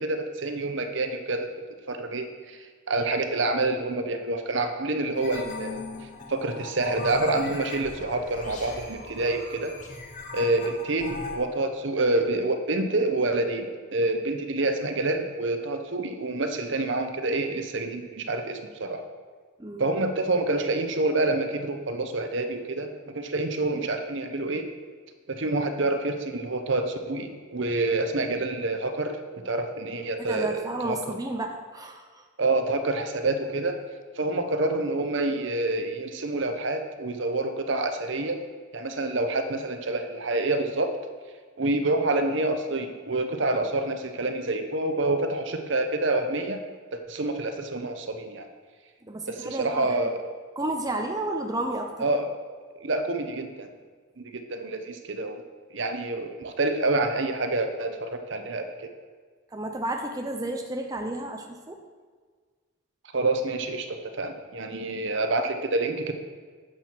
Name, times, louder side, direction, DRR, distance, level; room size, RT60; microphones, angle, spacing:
voice 1, 0.0-1.5 1.9-5.8 6.3-9.7 10.3-13.7 13.9-19.1 19.8-24.7 25.3-29.2 29.4-31.0 32.4-33.8 34.2-38.4 38.7-40.9 41.6-46.6 46.9-48.4 49.3-50.2 52.0-52.3 52.8-53.7 54.2-55.4 55.7-58.7 63.1-66.1, right 2 dB, 60° right, 6 dB, 0.9 m, -27 dB
sound 1, 5.2-11.4, left 3 dB, 35° left, 1.4 m, -39 dB
voice 2, 19.6-19.9 30.2-32.2 49.0-50.0 50.6-52.1 59.5-61.8, right 1 dB, 15° right, 3 dB, 0.6 m, -32 dB
10.5 x 7.7 x 4.5 m, 1.5 s
head